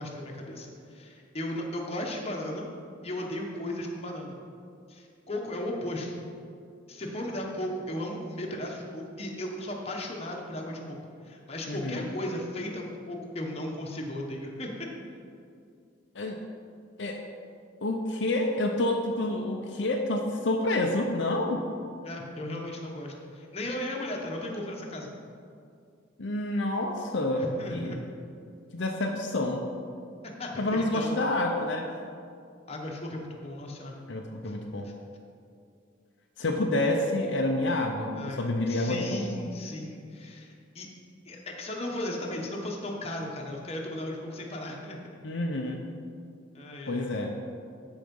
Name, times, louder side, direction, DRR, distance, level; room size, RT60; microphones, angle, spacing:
voice 1, 0.0-2.7 3.0-4.4 4.9-6.2 6.9-11.0 11.2-14.9 22.0-25.1 27.4-28.0 30.2-31.2 32.7-34.0 34.4-34.5 34.8-34.9 38.1-40.9 41.3-45.0 46.5-47.4, left 1 dB, 30° left, 0 dB, 1.2 m, -36 dB
voice 2, 11.7-12.1 16.1-16.4 17.0-17.2 17.8-21.6 26.2-28.0 28.7-29.6 30.6-31.9 34.1-34.9 36.4-39.2 45.2-45.8 46.9-47.3, left 2 dB, 65° left, 1 dB, 0.7 m, -28 dB
12.5 x 5.0 x 5.4 m, 2.4 s
head